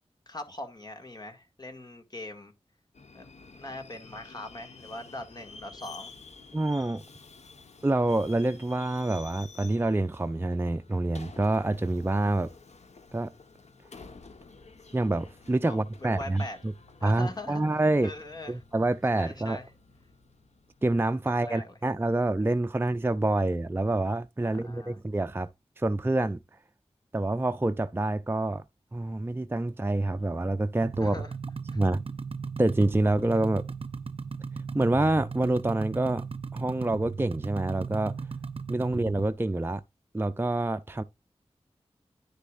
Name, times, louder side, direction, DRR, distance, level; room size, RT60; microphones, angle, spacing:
voice 1, 0.3-2.5 3.1-3.3 3.6-6.1 15.7-16.6 17.0-17.6 18.0-18.6 19.1-19.7 21.3-21.7 24.4-25.0 31.0-31.3 31.7-31.8 38.8-39.0, left 1 dB, 35° left, 2.0 m, -41 dB
Subway metro underground, 2.9-21.4, left 4 dB, 80° left, 1.2 m, -51 dB
voice 2, 6.5-7.0 7.8-12.5 13.1-13.3 14.9-16.4 17.0-18.1 18.5-19.6 20.8-25.5 25.8-26.4 27.1-28.6 28.9-31.1 31.7-32.0 32.6-33.7 34.7-36.2 36.5-38.2 38.7-39.8 40.1-41.0, right 2 dB, 20° right, 0.5 m, -27 dB
sound 1, 30.8-39.3, right 5 dB, 55° right, 0.7 m, -37 dB
10.0 x 6.7 x 2.5 m
wide cardioid pair, 60°, 11 cm